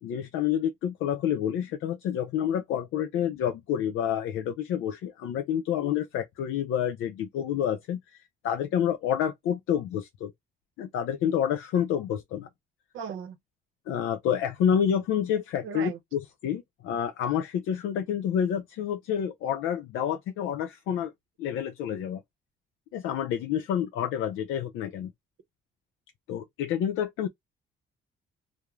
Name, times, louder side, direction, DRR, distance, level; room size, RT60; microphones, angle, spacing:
voice 1, 0.0-10.3 10.8-12.5 13.9-21.1 21.4-22.2 22.9-25.1 26.3-27.3, left 9 dB, 85° left, 0.4 m, -28 dB
voice 2, 12.9-13.4 15.6-16.0, right 7 dB, 80° right, 0.7 m, -36 dB
2.3 x 2.0 x 3.0 m
cardioid pair, 90°, 20 cm